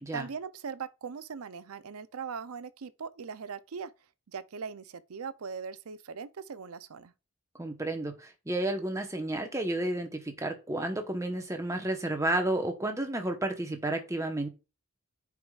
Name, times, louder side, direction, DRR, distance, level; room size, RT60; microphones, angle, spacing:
voice 1, 0.1-3.9 4.3-7.1, right 6 dB, 80° right, 0.5 m, -40 dB
voice 2, 7.6-14.5, right 1 dB, 15° right, 1.0 m, -31 dB
10.5 x 4.9 x 2.4 m
head